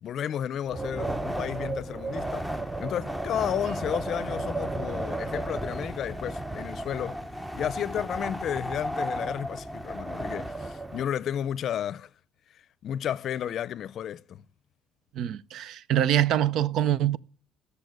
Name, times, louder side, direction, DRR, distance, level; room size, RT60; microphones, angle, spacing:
voice 1, 0.0-2.5 2.8-7.2 7.5-12.1 12.5-14.4, left 10 dB, 55° left, 0.5 m, -32 dB
Wind, 0.7-11.0, right 1 dB, 10° right, 0.8 m, -33 dB
voice 2, 15.1-17.2, right 11 dB, 70° right, 0.6 m, -24 dB
15.5 x 6.9 x 9.3 m
cardioid pair, 110°, 0 cm